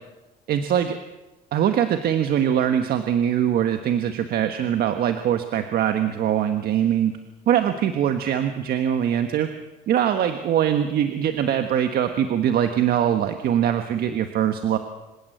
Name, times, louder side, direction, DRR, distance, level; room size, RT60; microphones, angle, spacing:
voice 1, 0.5-1.0 1.5-7.1 7.5-9.5 9.9-14.8, right 9 dB, 65° right, 7 dB, 1.4 m, -22 dB
26.5 x 16.5 x 8.0 m, 1.1 s
cardioid pair, 110°, 17 cm